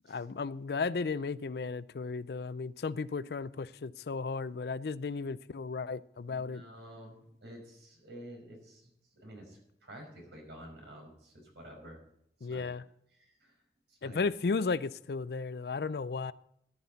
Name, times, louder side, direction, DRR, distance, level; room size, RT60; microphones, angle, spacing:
voice 1, 0.1-6.6 12.4-12.8 14.0-16.3, left 4 dB, 60° left, 17 dB, 0.4 m, -34 dB
voice 2, 6.3-12.0 12.5-12.7 13.2-13.6 13.9-14.2, equal, 80° right, 1 dB, 5.3 m, -50 dB
14.0 x 10.5 x 4.1 m, 0.73 s
head